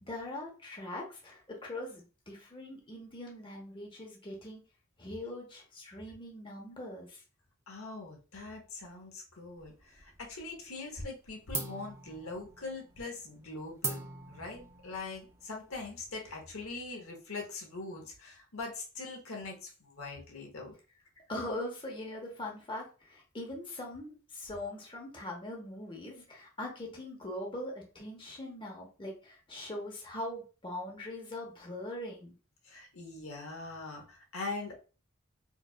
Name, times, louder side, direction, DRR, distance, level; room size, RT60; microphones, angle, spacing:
voice 1, 0.0-4.6 5.0-7.2 21.3-32.3, left 1 dB, 25° left, -1 dB, 0.9 m, -41 dB
voice 2, 7.7-20.7 32.6-34.8, left 3 dB, 85° left, 0 dB, 1.1 m, -42 dB
sound 1, 9.6-10.5 10.8-11.2 11.5-16.7, right 3 dB, 10° right, 0.4 m, -42 dB
4.5 x 2.5 x 2.4 m, 0.34 s
head